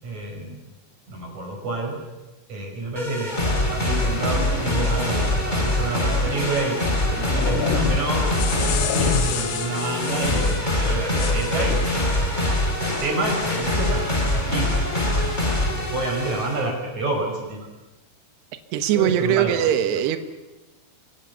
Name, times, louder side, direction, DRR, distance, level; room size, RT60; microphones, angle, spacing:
voice 1, 0.0-0.7 1.1-2.0 2.5-8.2 8.9-14.8 15.7-17.7 18.9-19.7, right 2 dB, 45° right, 2 dB, 6.9 m, -29 dB
sound 1, 3.0-16.7, left 1 dB, 10° left, 3.7 m, -24 dB
sound 2, 6.8-9.6, left 8 dB, 60° left, 2.7 m, -30 dB
sound 3, 8.1-10.7 11.2-11.9, left 11 dB, 85° left, 3.5 m, -31 dB
voice 2, 18.7-20.2, right 10 dB, 75° right, 9 dB, 3.3 m, -21 dB
30.0 x 24.0 x 7.0 m, 1.1 s
omnidirectional pair, 4.8 m